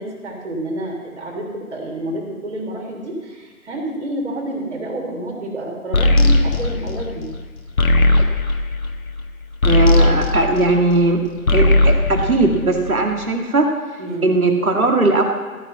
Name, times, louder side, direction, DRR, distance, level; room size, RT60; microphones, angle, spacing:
voice 1, 0.0-7.3 14.0-14.3, right 1 dB, 50° right, 0 dB, 3.4 m, -29 dB
sound 1, 5.9-11.1 11.4-13.1, left 2 dB, 70° left, 1.4 m, -17 dB
voice 2, 9.6-11.2 11.5-13.7 14.2-15.2, right 2 dB, 70° right, 3 dB, 2.1 m, -18 dB
14.5 x 6.2 x 7.6 m, 1.4 s
figure-of-eight pair, 145°, 44 cm